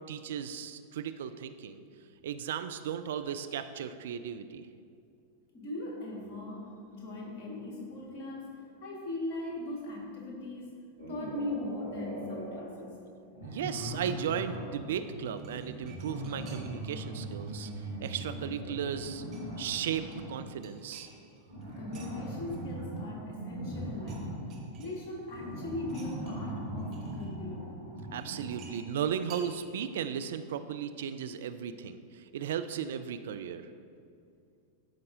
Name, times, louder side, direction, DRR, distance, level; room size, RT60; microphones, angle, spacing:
voice 1, 0.1-1.8 2.2-4.7 13.4-19.2 19.6-21.1 28.1-33.7, right 8 dB, 60° right, 10 dB, 0.3 m, -36 dB
voice 2, 5.5-13.0 21.8-24.3 24.8-27.7, left 2 dB, 45° left, -1 dB, 1.7 m, -39 dB
sound 1, 11.0-12.7 13.3-20.5 21.5-28.9, right 1 dB, 85° right, 2.0 m, -40 dB
sound 2, 15.4-16.9 17.2-18.6 19.0-19.6 19.9-22.1 22.5-23.4 23.7-24.2 24.5-25.4 25.8-27.3 28.2-30.0 30.2-30.3, right 5 dB, 35° right, 1.2 m, -55 dB
13.5 x 5.2 x 2.7 m, 2.4 s
figure-of-eight pair, 90°, 0 cm